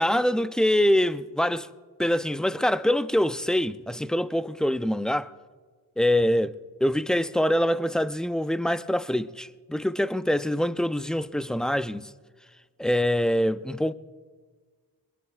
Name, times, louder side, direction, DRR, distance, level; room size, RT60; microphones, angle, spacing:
voice 1, 0.0-1.7 2.0-5.3 6.0-6.5 6.8-12.1 12.8-13.9, left 1 dB, ahead, 0.5 m, -24 dB
24.5 x 21.5 x 2.4 m
cardioid pair, 65°, 39 cm